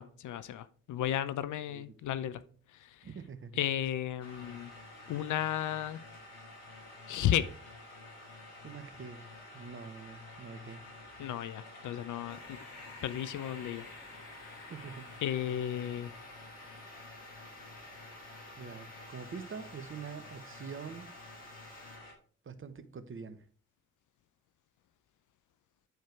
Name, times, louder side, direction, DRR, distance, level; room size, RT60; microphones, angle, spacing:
voice 1, 0.0-2.4 3.6-4.7 5.1-6.0 7.1-7.5 11.2-12.6 13.0-13.8 15.2-16.1, left 11 dB, 55° left, 15 dB, 0.6 m, -33 dB
voice 2, 3.0-3.6 8.6-9.2 9.5-10.9 14.6-15.1 18.6-21.1 22.4-23.5, right 5 dB, 35° right, 10 dB, 1.0 m, -45 dB
sound 1, 4.2-22.1, left 2 dB, 75° left, 1.7 m, -50 dB
sound 2, 12.3-22.0, left 1 dB, 20° left, 2.7 m, -58 dB
9.4 x 4.5 x 4.6 m, 0.43 s
hypercardioid pair, 40°, 37 cm